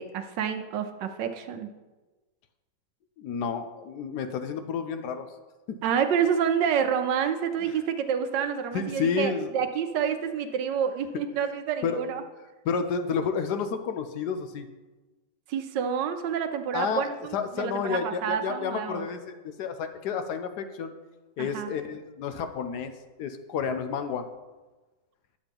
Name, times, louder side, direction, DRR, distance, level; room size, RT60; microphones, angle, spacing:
voice 1, 0.0-1.7 5.8-12.2 15.5-19.1 21.4-21.7, right 7 dB, 75° right, 7 dB, 1.3 m, -28 dB
voice 2, 3.2-5.3 5.7-5.8 8.7-9.5 11.8-12.1 12.6-14.7 16.7-17.1 17.3-20.9 21.4-22.9 23.2-24.3, left 6 dB, 70° left, 8 dB, 1.1 m, -30 dB
10.5 x 7.4 x 3.5 m, 1.2 s
omnidirectional pair, 2.0 m